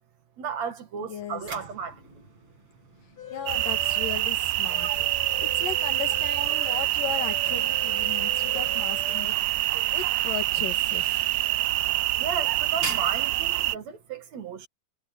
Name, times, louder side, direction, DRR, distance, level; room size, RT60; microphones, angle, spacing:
voice 1, 0.4-2.2 4.8-5.0 6.4-6.6 12.1-14.7, right 6 dB, 60° right, 2.8 m, -34 dB
voice 2, 1.0-1.4 3.3-4.9 5.4-9.3 9.6-11.2, left 8 dB, 80° left, 3.8 m, -36 dB
sound 1, 1.1-14.1, right 3 dB, 40° right, 6.7 m, -46 dB
sound 2, 3.2-4.3 4.6-9.4, left 7 dB, 55° left, 5.6 m, -42 dB
sound 3, 3.5-13.8, right 17 dB, 85° right, 2.3 m, -26 dB
omnidirectional pair, 3.8 m